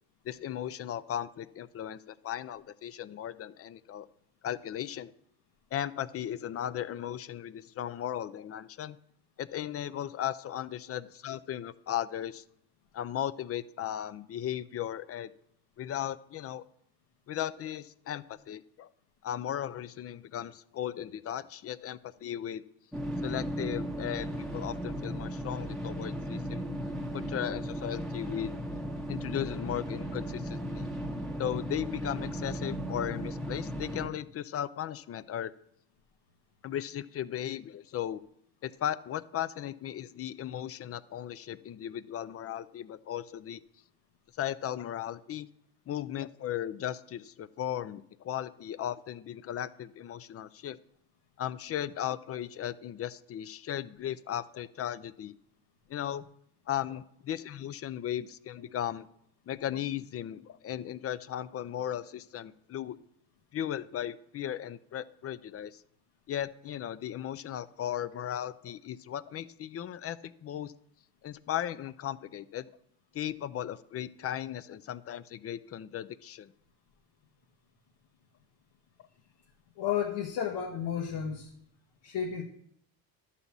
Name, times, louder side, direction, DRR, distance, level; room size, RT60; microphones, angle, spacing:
voice 1, 0.2-4.1 4.4-5.1 5.7-9.0 9.4-12.4 12.9-15.3 15.8-16.6 17.3-18.9 19.2-22.6 23.2-26.7 27.1-28.5 29.1-30.8 31.4-35.5 36.6-38.2 38.6-43.6 44.4-45.5 45.9-50.8 51.4-55.3 55.9-56.3 56.7-59.1 59.5-63.0 63.5-65.8 66.3-70.7 71.2-72.7 73.1-76.5, left 11 dB, 35° left, 17 dB, 0.5 m, -36 dB
sound 1, 22.9-34.1, equal, ahead, 1.2 m, -36 dB
voice 2, 79.8-81.5 82.0-82.4, left 8 dB, 65° left, -1 dB, 1.3 m, -32 dB
11.0 x 4.2 x 7.2 m, 0.71 s
hypercardioid pair, 75°, 45 cm